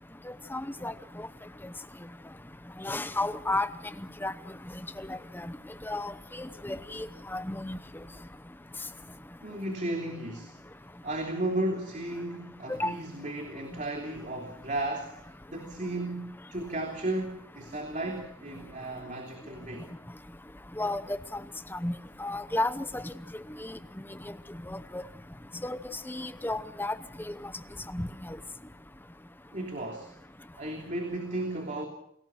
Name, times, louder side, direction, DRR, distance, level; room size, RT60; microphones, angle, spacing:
voice 1, 0.3-1.3 2.8-3.7 4.2-4.3 5.0-5.5 5.9-7.1 7.3-7.8 12.7-12.9 20.8-21.4 21.7-21.9 22.2-23.1 23.6-23.8 24.7-25.0 25.6-25.8 26.1-26.9 27.3-27.4 27.9-28.4, left 2 dB, 10° left, 12 dB, 0.8 m, -33 dB
voice 2, 9.4-10.6 11.0-19.9 29.5-30.1 30.6-31.9, right 1 dB, 35° right, 3 dB, 3.1 m, -34 dB
29.0 x 19.5 x 6.1 m, 0.72 s
head